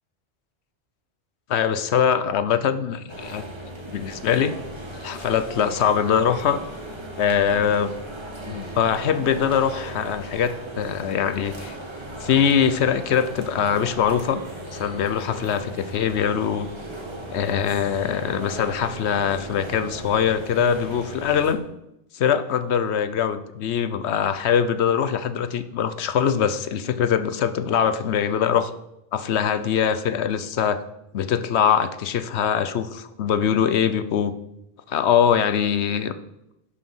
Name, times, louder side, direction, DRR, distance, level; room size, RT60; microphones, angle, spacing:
voice 1, 1.5-3.5 3.9-4.6 5.0-6.6 7.2-7.9 8.5-11.8 12.2-14.4 14.7-16.7 17.3-21.6 22.1-28.7 29.1-30.8 31.1-34.4 34.9-36.1, left 8 dB, 85° left, 13 dB, 1.0 m, -22 dB
sound 1, 3.1-21.5, right 1 dB, 25° right, 1.6 m, -37 dB
11.0 x 6.7 x 5.5 m, 0.87 s
omnidirectional pair, 1.1 m